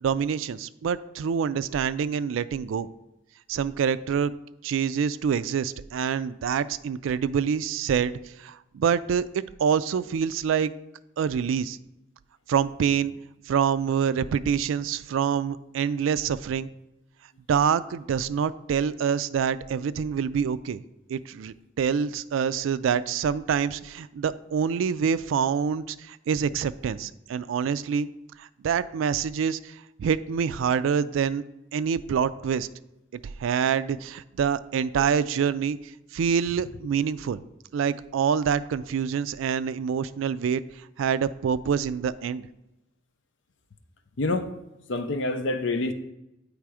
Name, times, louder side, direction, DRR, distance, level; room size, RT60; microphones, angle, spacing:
voice 1, 0.0-2.9 3.5-4.3 4.6-10.7 11.2-11.8 12.5-13.1 13.5-16.7 17.5-20.8 21.1-28.1 28.4-31.4 31.7-32.7 33.4-35.8 36.1-37.4 37.7-40.6 41.0-42.5, right 7 dB, 85° right, 16 dB, 0.3 m, -26 dB
voice 2, 44.2-44.5 44.9-45.9, left 2 dB, 70° left, 8 dB, 0.6 m, -26 dB
8.6 x 3.4 x 4.8 m, 0.94 s
head